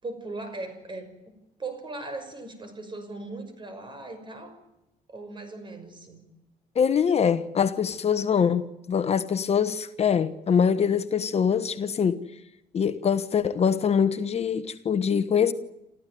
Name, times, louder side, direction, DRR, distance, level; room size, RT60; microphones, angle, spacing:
voice 1, 0.0-4.6 5.1-6.3, right 2 dB, 30° right, 5.8 m, -39 dB
voice 2, 6.7-12.2 12.7-15.5, left 7 dB, 40° left, 1.2 m, -24 dB
28.5 x 14.5 x 9.4 m
cardioid pair, 115°, 16 cm